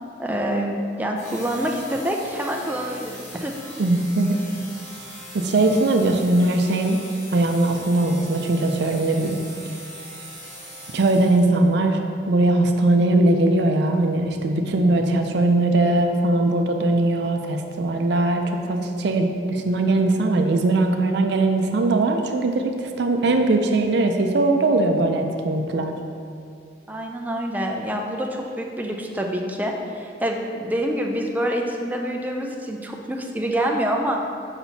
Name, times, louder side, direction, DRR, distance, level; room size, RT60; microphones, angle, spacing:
voice 1, 0.2-3.5 26.9-34.2, equal, 10° right, 0 dB, 0.4 m, -26 dB
sound 1, 1.2-11.7, equal, 40° left, 1.4 m, -40 dB
voice 2, 3.8-4.4 5.3-7.0 7.3-9.4 10.9-26.0, right 2 dB, 70° right, 4 dB, 0.5 m, -20 dB
6.0 x 5.8 x 2.7 m, 2.3 s
head